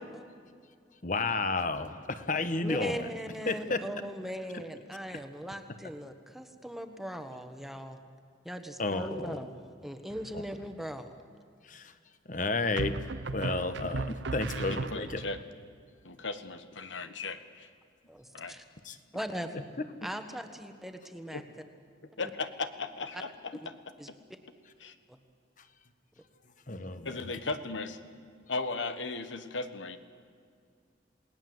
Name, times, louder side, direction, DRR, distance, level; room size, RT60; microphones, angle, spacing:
voice 1, 1.0-3.0 3.5-3.8 8.8-9.4 10.3-10.4 11.6-11.9 12.3-13.0 13.3-15.2 18.8-19.0 26.7-27.1, left 3 dB, 45° left, 11 dB, 1.3 m, -31 dB
voice 2, 2.6-8.0 8.4-11.1 18.1-18.6 19.1-19.6 20.0-21.4 22.2-22.3 24.0-24.1 25.1-25.2, equal, ahead, 6 dB, 1.3 m, -39 dB
sound 1, 10.1-10.7 12.8-15.4, right 3 dB, 75° right, 0.7 m, -36 dB
voice 3, 14.6-15.4 16.0-17.7 18.3-18.6 21.3-21.4 22.2-23.7 24.1-24.2 24.8-24.9 27.0-28.0 28.5-30.0, left 3 dB, 90° left, 10 dB, 1.5 m, -37 dB
28.5 x 19.0 x 7.9 m, 2.2 s
head